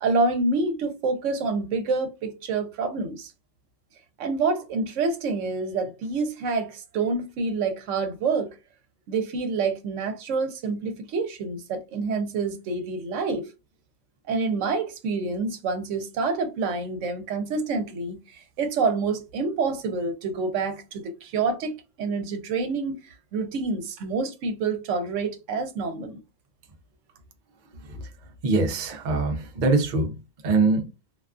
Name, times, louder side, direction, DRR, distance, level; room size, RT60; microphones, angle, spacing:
voice 1, 0.0-3.3 4.2-8.5 9.1-13.4 14.3-23.0 23.3-26.2, right 4 dB, 75° right, 0.9 m, -27 dB
voice 2, 28.4-30.1 30.4-30.9, right 3 dB, 55° right, 0.5 m, -23 dB
2.4 x 2.3 x 2.3 m
omnidirectional pair, 1.3 m